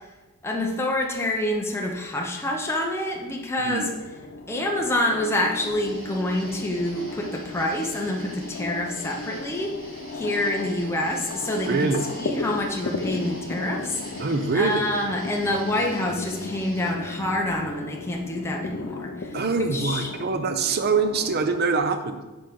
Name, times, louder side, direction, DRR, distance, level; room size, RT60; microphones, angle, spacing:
voice 1, 0.4-3.8 4.5-9.7 10.1-11.8 12.2-14.3 14.5-20.1, left 1 dB, 10° left, -1 dB, 0.7 m, -27 dB
voice 2, 3.6-3.9 11.7-12.1 14.2-14.9 19.3-22.2, right 4 dB, 50° right, 8 dB, 0.5 m, -24 dB
sound 1, 3.8-21.8, left 3 dB, 55° left, 0.5 m, -36 dB
sound 2, 5.8-16.9, right 1 dB, 70° right, 2.3 m, -47 dB
5.3 x 4.4 x 5.3 m, 1.1 s
head